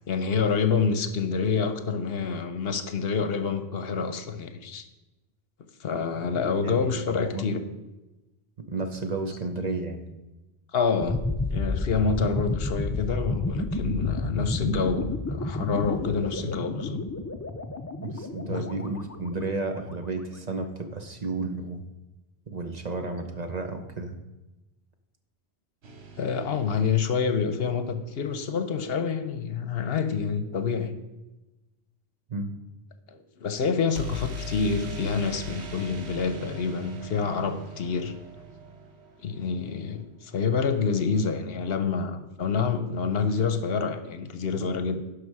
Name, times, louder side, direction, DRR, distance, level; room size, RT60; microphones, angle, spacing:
voice 1, 0.1-4.8 5.8-7.6 10.7-11.2 11.5-17.0 18.4-18.7 26.2-30.9 33.1-38.2 39.2-45.0, left 5 dB, 70° left, 9 dB, 1.0 m, -27 dB
voice 2, 6.6-7.4 8.6-10.1 18.0-21.8 22.5-24.2 32.3-32.5, right 3 dB, 40° right, 6 dB, 1.0 m, -32 dB
sound 1, 11.0-19.9, left 2 dB, 25° left, 0.3 m, -31 dB
sound 2, 25.8-27.9 34.0-39.7, equal, 85° right, 1.3 m, -40 dB
12.0 x 5.2 x 4.8 m, 1.0 s
omnidirectional pair, 1.1 m